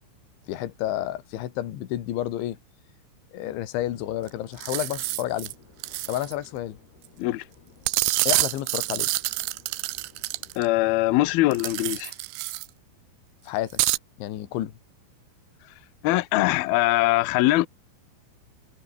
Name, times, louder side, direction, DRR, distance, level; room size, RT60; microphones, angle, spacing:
voice 1, 0.5-2.6 3.3-5.5 6.1-6.8 8.3-9.1 13.4-13.8 14.2-14.8, left 13 dB, 70° left, 4.3 m, -30 dB
sound 1, 3.7-12.1, left 5 dB, 50° left, 8.4 m, -56 dB
sound 2, 4.3-4.4 4.6-5.5 5.8-6.3 7.9-10.7 11.5-12.7 13.7-14.0, right 20 dB, 90° right, 2.5 m, -27 dB
voice 2, 10.6-12.1 16.0-17.7, left 18 dB, 85° left, 2.1 m, -22 dB
omnidirectional pair, 5.8 m